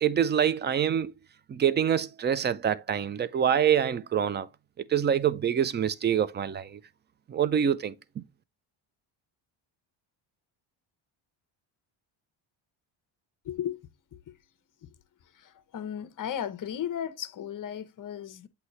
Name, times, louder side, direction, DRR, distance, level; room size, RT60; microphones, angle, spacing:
voice 1, 0.0-1.1 1.5-4.5 4.8-6.8 7.3-8.2, right 9 dB, 25° right, 0.3 m, -26 dB
voice 2, 13.4-13.8 15.4-18.5, left 9 dB, 40° left, 0.8 m, -35 dB
8.1 x 2.8 x 4.3 m
cardioid pair, 110°, 50 cm